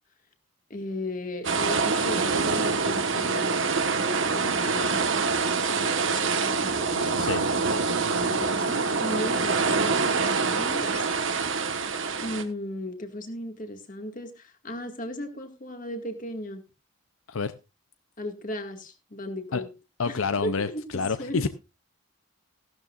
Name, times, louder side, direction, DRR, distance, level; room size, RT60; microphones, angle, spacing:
voice 1, 0.7-11.0 12.2-16.6 18.2-19.7 20.1-21.5, left 1 dB, 40° left, 2.0 m, -36 dB
sound 1, 1.4-12.4, right 4 dB, 60° right, 1.3 m, -25 dB
voice 2, 20.0-20.7 20.9-21.5, left 4 dB, 75° left, 0.6 m, -27 dB
16.0 x 12.5 x 2.5 m
head